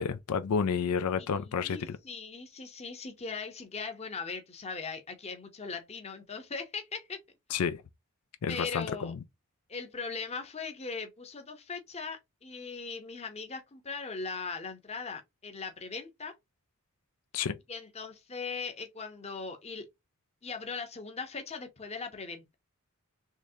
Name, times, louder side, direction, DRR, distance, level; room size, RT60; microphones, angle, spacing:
voice 1, 0.0-2.0 7.5-7.8 8.4-9.1 17.3-17.5, left 6 dB, 75° left, 0.4 m, -30 dB
voice 2, 1.2-7.2 8.5-9.1 9.7-16.4 17.7-19.9 20.4-22.6, left 4 dB, 30° left, 0.8 m, -39 dB
3.8 x 3.1 x 2.7 m
head